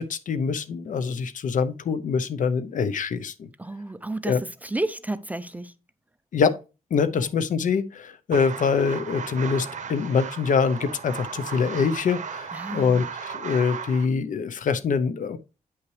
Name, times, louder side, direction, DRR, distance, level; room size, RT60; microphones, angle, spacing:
voice 1, 0.0-3.5 4.3-4.4 6.3-6.6 6.9-15.4, left 5 dB, 60° left, 0.7 m, -24 dB
voice 2, 3.6-4.4 4.6-5.7 7.1-7.3 12.5-13.1, right 2 dB, 10° right, 0.4 m, -31 dB
sound 1, 8.3-14.1, right 6 dB, 55° right, 0.8 m, -36 dB
9.0 x 5.7 x 3.2 m
wide cardioid pair, 170°, 15 cm